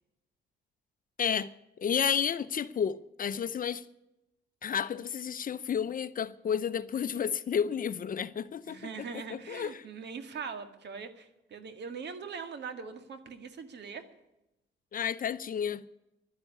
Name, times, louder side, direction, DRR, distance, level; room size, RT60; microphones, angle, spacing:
voice 1, 1.2-1.5 1.8-3.8 4.6-9.8 14.9-15.8, left 7 dB, 45° left, 0.7 m, -31 dB
voice 2, 8.7-14.1, right 5 dB, 60° right, 1.8 m, -41 dB
12.0 x 10.5 x 9.3 m
cardioid pair, 90°, 20 cm